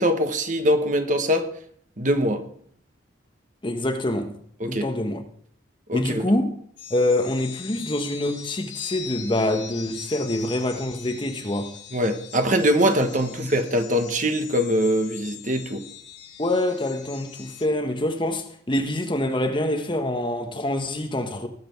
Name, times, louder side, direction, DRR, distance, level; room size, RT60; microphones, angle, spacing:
voice 1, 0.0-1.5 2.0-2.4 4.6-4.9 5.9-6.3 11.9-15.8, equal, 40° right, 1.3 m, -22 dB
voice 2, 3.6-4.3 4.7-5.2 5.9-6.6 6.9-11.7 13.3-13.5 16.4-21.5, left 1 dB, 25° left, 1.3 m, -25 dB
sound 1, 6.8-17.7, left 8 dB, 80° left, 4.4 m, -41 dB
19.0 x 7.8 x 4.6 m
head